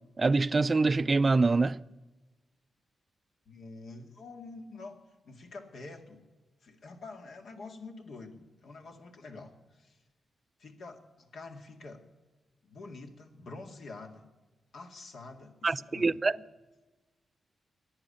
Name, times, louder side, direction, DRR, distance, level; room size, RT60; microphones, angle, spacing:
voice 1, 0.2-1.8 15.6-16.3, right 3 dB, 35° right, 0.4 m, -25 dB
voice 2, 3.5-5.0 5.2-6.2 6.6-10.0 10.6-12.0 12.6-14.2 14.7-16.2, left 3 dB, 70° left, 2.1 m, -47 dB
14.0 x 9.9 x 9.9 m
cardioid pair, 75°, 0 cm